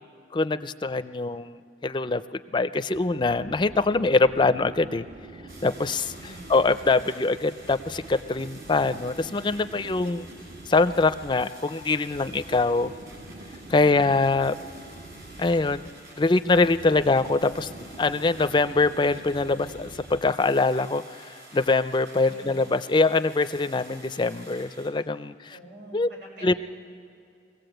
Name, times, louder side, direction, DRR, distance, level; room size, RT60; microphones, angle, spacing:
voice 1, 0.3-5.1 5.6-6.1 6.5-10.3 10.7-12.9 13.7-14.6 15.4-15.8 16.2-17.7 18.0-25.6 25.9-26.1 26.4-26.5, left 3 dB, 25° left, 13 dB, 0.4 m, -23 dB
sound 1, 2.9-20.6, right 2 dB, 40° right, 0.7 m, -45 dB
sound 2, 5.5-24.9, right 2 dB, 55° right, 5.3 m, -50 dB
voice 2, 6.1-6.6 15.3-15.7 16.8-17.1 22.3-22.6 25.5-26.5, right 1 dB, 85° right, -2 dB, 6.1 m, -47 dB
23.0 x 16.5 x 7.9 m, 2.5 s
head